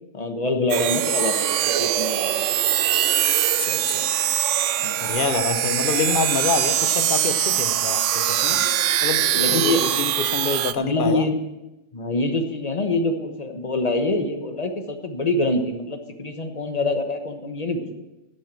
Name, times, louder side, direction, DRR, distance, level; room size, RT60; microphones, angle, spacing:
voice 1, 0.1-2.5 4.8-5.0 8.5-8.7 9.4-9.9 10.8-11.4 11.9-17.9, left 2 dB, 35° left, 6 dB, 1.2 m, -25 dB
sound 1, 0.7-10.7, right 11 dB, 75° right, 0.9 m, -22 dB
voice 2, 3.6-4.0 5.0-8.6 9.0-11.3, left 5 dB, 50° left, 11 dB, 0.8 m, -27 dB
12.0 x 8.0 x 7.5 m, 0.99 s
omnidirectional pair, 1.3 m